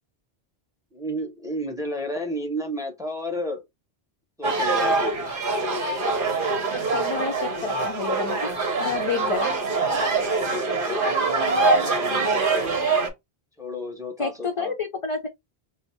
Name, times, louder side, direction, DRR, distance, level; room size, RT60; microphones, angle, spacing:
voice 1, 0.9-3.6 4.4-5.2 10.4-12.8 13.6-14.7, left 1 dB, 5° right, 0.8 m, -32 dB
sound 1, 4.4-13.1, right 3 dB, 60° right, 1.1 m, -24 dB
voice 2, 6.9-8.5 8.8-9.5 14.2-15.3, left 5 dB, 45° left, 0.4 m, -29 dB
3.3 x 2.0 x 4.2 m
omnidirectional pair, 1.1 m